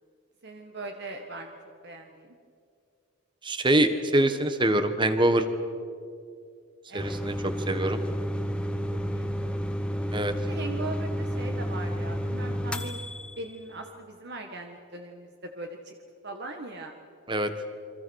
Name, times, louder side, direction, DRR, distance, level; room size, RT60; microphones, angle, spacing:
voice 1, 0.4-1.6 1.8-2.3 6.9-7.1 8.9-9.7 10.5-13.0 13.4-15.9 16.2-16.9, right 2 dB, 50° right, 3 dB, 1.6 m, -40 dB
voice 2, 3.4-5.5 6.9-8.0 10.1-10.3 17.3-17.5, right 1 dB, 20° right, 9 dB, 1.4 m, -24 dB
sound 1, 7.0-13.5, equal, 5° left, 1.1 m, -31 dB
28.5 x 24.0 x 6.4 m, 2.4 s
head